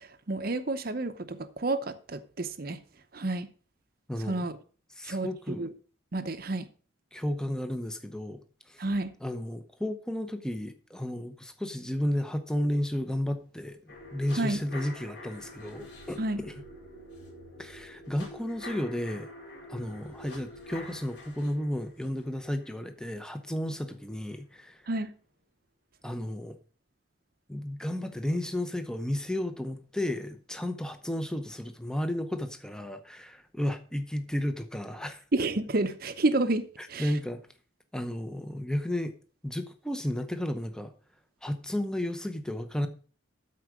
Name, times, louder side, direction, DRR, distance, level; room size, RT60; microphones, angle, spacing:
voice 1, 0.0-2.8 3.1-3.5 4.3-4.5 5.0-5.7 6.1-6.7 8.8-9.1 14.4-14.6 16.2-16.4 24.9-25.1 35.3-37.1, right 2 dB, 45° right, 0.7 m, -30 dB
voice 2, 4.1-4.5 5.0-5.7 7.1-8.8 9.2-16.5 17.6-19.3 19.7-24.8 26.0-26.6 27.5-35.2 36.8-37.4 37.9-39.1 39.4-40.9 41.4-42.9, left 1 dB, 5° left, 0.7 m, -33 dB
sound 1, 13.9-23.9 24.3-24.4, left 1 dB, 55° left, 4.5 m, -47 dB
13.0 x 4.7 x 6.1 m
head